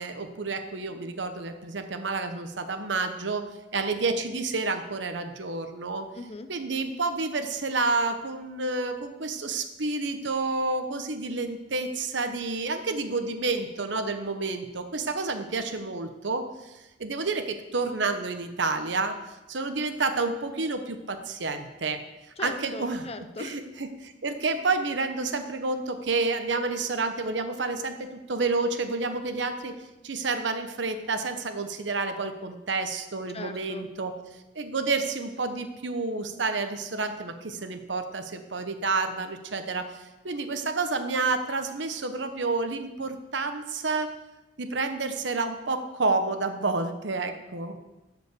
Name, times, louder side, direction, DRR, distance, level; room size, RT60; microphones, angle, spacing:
voice 1, 0.0-3.4 3.7-6.1 6.5-19.1 19.5-22.0 22.4-23.1 23.4-29.8 30.0-34.1 34.5-44.1 44.6-47.8, right 3 dB, 70° right, 8 dB, 1.0 m, -29 dB
voice 2, 6.1-6.5 22.4-23.6 33.3-33.9, left 3 dB, 35° left, 9 dB, 0.7 m, -39 dB
13.0 x 5.1 x 6.9 m, 1.0 s
head